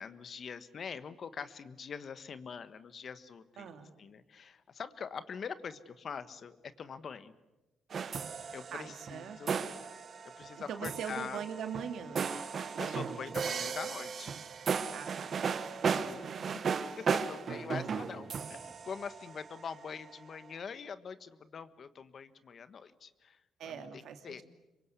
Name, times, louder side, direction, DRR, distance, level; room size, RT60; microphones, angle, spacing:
voice 1, 0.0-3.7 4.0-7.3 8.5-9.6 10.4-11.4 12.8-14.3 15.9-16.3 17.0-24.4, left 6 dB, 50° left, 13 dB, 1.4 m, -44 dB
voice 2, 3.6-3.9 8.7-9.4 10.6-12.3 12.7-13.5 14.9-16.4 16.9-17.0 23.6-24.4, right 7 dB, 75° right, 7 dB, 2.7 m, -43 dB
sound 1, 7.9-19.7, right 6 dB, 50° right, 1.4 m, -36 dB
26.5 x 23.5 x 8.2 m, 1.1 s
cardioid pair, 90°, 0 cm